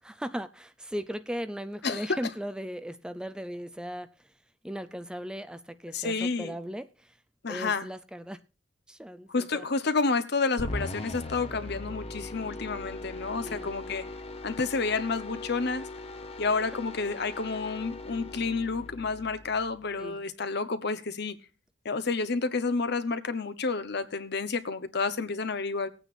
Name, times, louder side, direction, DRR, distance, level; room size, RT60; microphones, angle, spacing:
voice 1, 0.0-4.3 4.6-7.2 7.5-8.4 8.9-9.6 13.4-13.7 20.0-20.2, equal, 5° right, 0.5 m, -37 dB
voice 2, 1.8-2.2 5.9-6.5 7.4-7.9 9.3-14.1 14.4-15.9 16.4-21.4 21.8-25.9, left 4 dB, 60° left, 1.0 m, -30 dB
sound 1, 10.6-20.0, left 2 dB, 30° left, 1.1 m, -40 dB
18.5 x 9.0 x 2.6 m
head